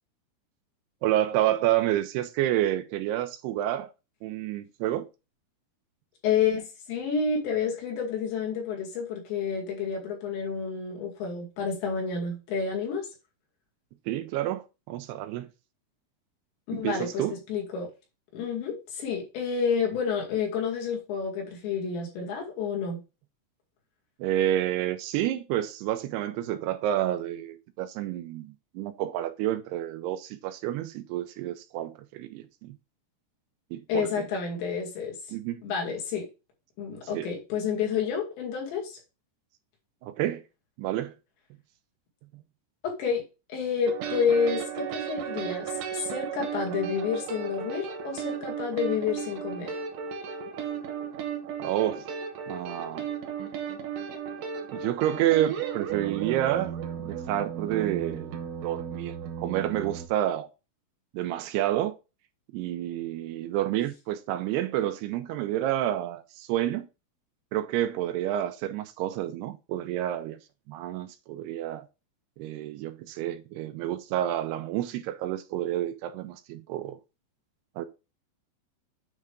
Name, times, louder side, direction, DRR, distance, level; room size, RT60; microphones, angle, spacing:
voice 1, 1.0-3.9 4.2-5.1 14.1-15.5 16.7-17.4 24.2-32.8 33.7-34.3 35.3-35.6 37.0-37.3 40.0-40.4 40.8-41.1 51.6-52.1 52.5-53.1 54.7-58.3 58.6-60.5 61.1-62.0 62.5-66.9 67.5-70.4 70.7-71.9 72.4-77.0 77.8-77.9, right 13 dB, 85° right, 2.5 m, -29 dB
voice 2, 6.2-13.1 16.7-17.9 18.3-23.0 33.9-35.2 35.6-36.3 36.8-39.0 42.8-43.2 43.5-49.7, left 6 dB, 85° left, 4.5 m, -29 dB
sound 1, 43.9-60.1, right 8 dB, 65° right, 2.2 m, -35 dB
9.4 x 3.3 x 5.0 m
omnidirectional pair, 5.0 m